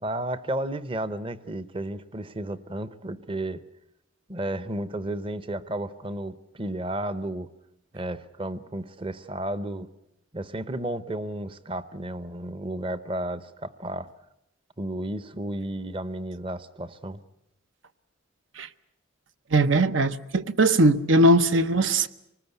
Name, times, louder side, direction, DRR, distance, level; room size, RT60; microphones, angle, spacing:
voice 1, 0.0-3.6 4.3-7.5 7.9-9.9 10.3-14.1 14.8-17.2, right 1 dB, 25° right, 0.8 m, -33 dB
voice 2, 19.5-22.1, right 1 dB, 75° right, 0.9 m, -20 dB
24.5 x 19.5 x 8.1 m
head